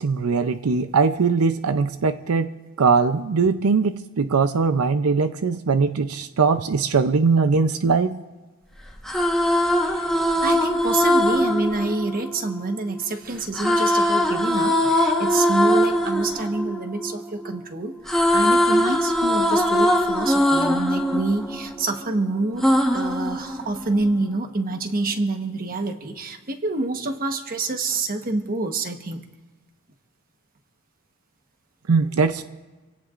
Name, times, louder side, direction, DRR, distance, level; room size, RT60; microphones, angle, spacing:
voice 1, 0.0-2.5 2.8-8.2 31.9-32.4, right 4 dB, 90° right, 10 dB, 0.6 m, -20 dB
sound 1, 8.9-13.0 13.5-17.6 17.9-22.1 22.6-24.1, equal, ahead, 1.3 m, -21 dB
voice 2, 10.4-29.2, right 2 dB, 40° right, 5 dB, 1.2 m, -27 dB
27.0 x 16.5 x 2.5 m, 1.2 s
head